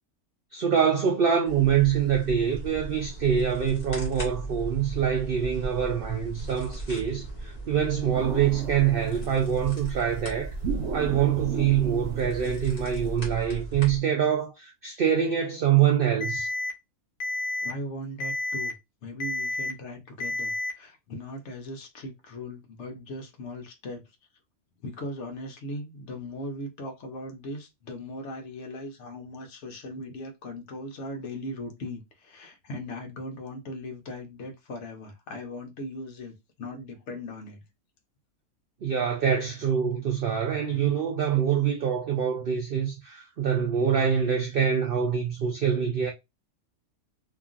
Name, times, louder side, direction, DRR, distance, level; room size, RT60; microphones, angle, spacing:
voice 1, 0.5-10.5 10.9-16.5 38.8-46.1, right 8 dB, 80° right, 0.5 m, -25 dB
sound 1, 1.5-14.0, right 2 dB, 30° left, 1.3 m, -37 dB
sound 2, 8.1-9.6 10.6-13.1, right 4 dB, 65° right, 0.9 m, -35 dB
Alarm, 16.2-16.7 17.2-17.7 18.2-18.7 19.2-19.7 20.2-20.7, left 2 dB, 80° left, 0.4 m, -30 dB
voice 2, 17.6-18.7 19.0-24.0 24.8-37.6, left 1 dB, 55° left, 1.0 m, -38 dB
2.9 x 2.5 x 2.4 m
omnidirectional pair, 1.6 m